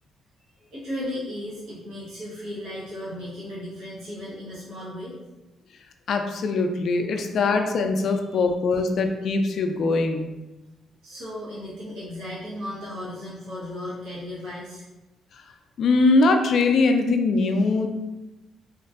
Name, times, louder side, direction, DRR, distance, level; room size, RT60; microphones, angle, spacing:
voice 1, 0.7-5.2 7.1-7.2 8.1-8.4 11.0-14.9, left 1 dB, 80° right, -9 dB, 1.0 m, -35 dB
voice 2, 6.1-10.3 15.8-17.9, left 3 dB, 65° left, 5 dB, 0.3 m, -22 dB
3.0 x 2.5 x 2.4 m, 1.0 s
cardioid pair, 90°, 0 cm